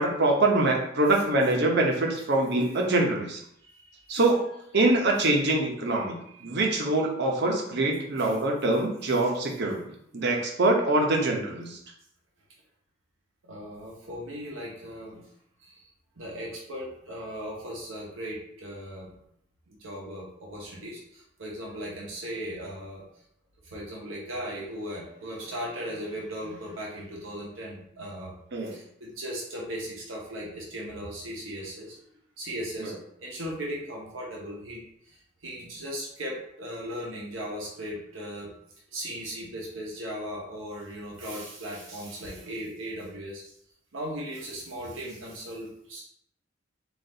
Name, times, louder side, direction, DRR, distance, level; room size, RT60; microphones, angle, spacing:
voice 1, 0.0-3.4 4.1-4.4 4.7-9.8 10.1-11.8 28.5-28.7, right 2 dB, 60° right, 0 dB, 0.8 m, -24 dB
voice 2, 3.6-4.2 5.8-6.1 6.3-6.6 8.2-8.3 9.6-9.8 13.4-15.3 15.6-15.9 16.2-19.2 19.7-23.2 23.6-28.3 28.6-32.0 32.4-32.9 33.2-38.5 38.9-43.5 43.9-46.0, equal, 85° right, -3 dB, 1.0 m, -38 dB
4.0 x 2.5 x 3.8 m, 0.71 s
head